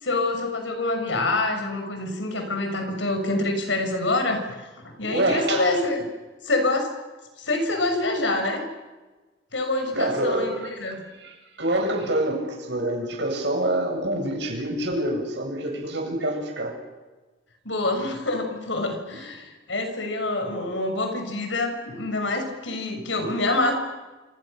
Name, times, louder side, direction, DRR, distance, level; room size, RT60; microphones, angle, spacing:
voice 1, 0.0-4.7 5.0-6.1 6.4-6.9 7.4-8.6 9.5-11.0 17.6-23.7, left 2 dB, 75° left, 5 dB, 6.5 m, -26 dB
voice 2, 5.1-5.6 9.9-10.7 11.2-16.7 19.1-19.2, right 1 dB, 65° right, 2 dB, 7.9 m, -26 dB
28.5 x 28.0 x 6.8 m, 1.2 s
head